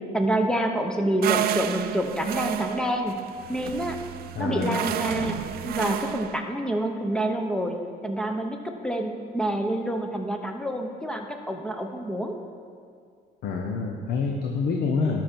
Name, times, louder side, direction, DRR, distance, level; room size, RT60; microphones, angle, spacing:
voice 1, 0.1-3.1 3.5-4.0 4.4-7.8 8.0-8.6 8.8-12.4, right 1 dB, 5° left, 4 dB, 0.9 m, -27 dB
sound 1, 1.2-6.4, right 11 dB, 65° right, 0.4 m, -30 dB
voice 2, 4.3-4.8 13.4-15.2, left 4 dB, 70° left, 1 dB, 0.9 m, -27 dB
13.0 x 5.9 x 4.5 m, 2.2 s
cardioid pair, 110°, 17 cm